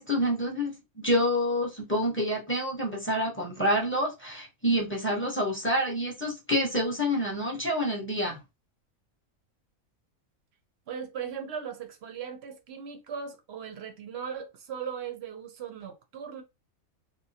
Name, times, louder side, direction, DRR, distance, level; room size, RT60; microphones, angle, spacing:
voice 1, 0.0-8.4, equal, 10° left, 0.7 m, -28 dB
voice 2, 10.9-16.4, right 7 dB, 60° right, 0.7 m, -38 dB
2.9 x 2.1 x 2.7 m
omnidirectional pair, 1.5 m